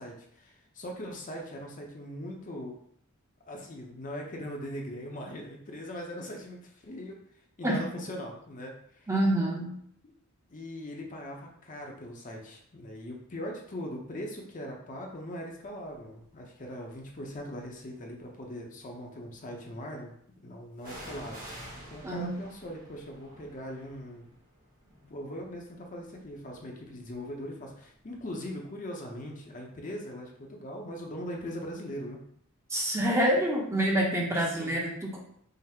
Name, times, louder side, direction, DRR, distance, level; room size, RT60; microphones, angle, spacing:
voice 1, 0.0-2.8 3.5-7.2 7.6-9.1 10.5-20.1 20.4-21.4 21.9-24.3 25.0-32.2 34.5-34.8, equal, 35° left, 1 dB, 0.6 m, -40 dB
voice 2, 9.1-9.7 22.0-22.4 32.7-35.2, right 1 dB, 15° right, -2 dB, 0.7 m, -27 dB
sound 1, 15.8-16.2 16.9-17.9 20.8-28.4 28.7-28.8, equal, 40° right, 1.3 m, -50 dB
5.5 x 2.0 x 3.5 m, 0.68 s
head